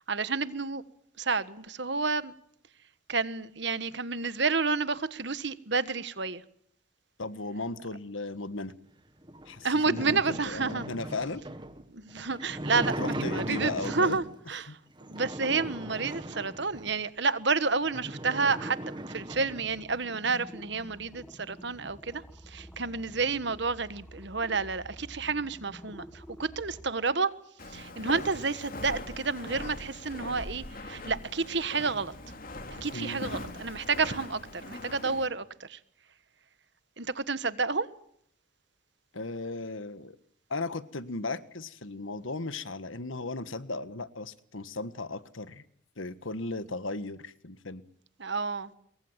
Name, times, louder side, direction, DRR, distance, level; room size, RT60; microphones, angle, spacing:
voice 1, 0.1-0.8 1.2-2.3 3.1-6.4 9.6-10.9 11.9-14.8 15.1-27.3 27.7-32.1 32.7-35.8 37.0-37.9 48.2-48.7, right 4 dB, 60° right, 1.4 m, -30 dB
voice 2, 7.2-8.7 9.4-11.4 12.7-14.2 14.7-14.8 32.9-33.2 39.1-40.2 40.5-45.6 46.0-47.8, left 2 dB, 75° left, 1.6 m, -36 dB
sound 1, 9.2-14.4 15.0-17.0 17.5-17.6 17.8-19.7, right 1 dB, 25° right, 1.7 m, -38 dB
sound 2, 19.3-26.9, equal, 5° left, 1.8 m, -49 dB
Walk footsteps, 27.6-35.3, left 2 dB, 45° left, 3.3 m, -41 dB
27.0 x 23.0 x 7.5 m
head